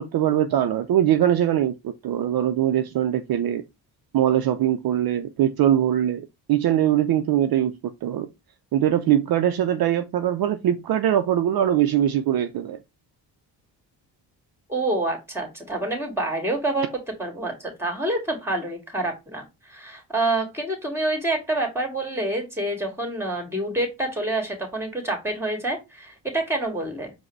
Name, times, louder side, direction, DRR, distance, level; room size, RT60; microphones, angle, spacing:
voice 1, 0.0-3.6 4.1-8.3 8.7-12.8, right 11 dB, 55° right, 0.5 m, -22 dB
voice 2, 14.7-16.9 17.2-27.1, right 2 dB, 5° right, 1.9 m, -27 dB
4.7 x 2.1 x 4.5 m
cardioid pair, 80°, 44 cm